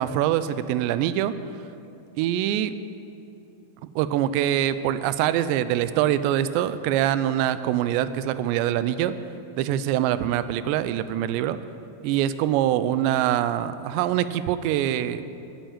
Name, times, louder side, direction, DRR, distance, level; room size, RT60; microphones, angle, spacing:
voice 1, 0.0-1.3 2.2-2.8 4.0-9.1 9.6-11.6 12.0-15.2, right 11 dB, 85° right, 13 dB, 2.8 m, -24 dB
12.5 x 9.0 x 8.6 m, 2.8 s
omnidirectional pair, 5.1 m